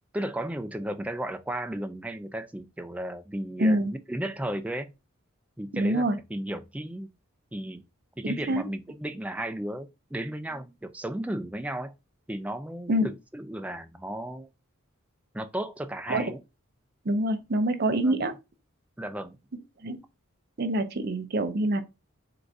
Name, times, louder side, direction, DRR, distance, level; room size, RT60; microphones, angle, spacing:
voice 1, 0.1-3.8 4.1-4.9 5.6-7.1 7.5-7.8 8.2-11.9 12.3-14.5 15.3-16.4 18.0-18.3 19.0-19.4, right 1 dB, 5° right, 0.3 m, -34 dB
voice 2, 3.6-3.9 5.7-6.2 8.2-8.7 12.9-13.1 16.1-16.3 17.1-18.3 19.8-20.0 20.6-21.8, right 1 dB, 50° right, 0.6 m, -25 dB
3.8 x 2.5 x 4.6 m
head